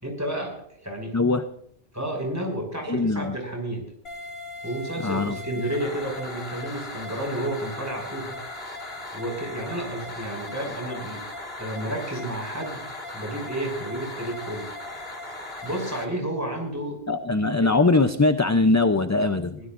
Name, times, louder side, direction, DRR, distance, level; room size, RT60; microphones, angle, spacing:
voice 1, 0.0-1.2 1.9-3.8 4.6-8.6 9.1-11.2 11.6-14.7 15.6-17.0 17.6-17.8 19.6-19.7, right 1 dB, 15° right, 1 dB, 6.0 m, -31 dB
voice 2, 1.1-1.4 2.9-3.3 5.0-5.3 17.1-19.6, left 3 dB, 20° left, 9 dB, 0.5 m, -21 dB
sound 1, 4.0-16.0, left 2 dB, 70° left, 3.6 m, -37 dB
23.0 x 16.5 x 2.6 m, 0.71 s
omnidirectional pair, 1.0 m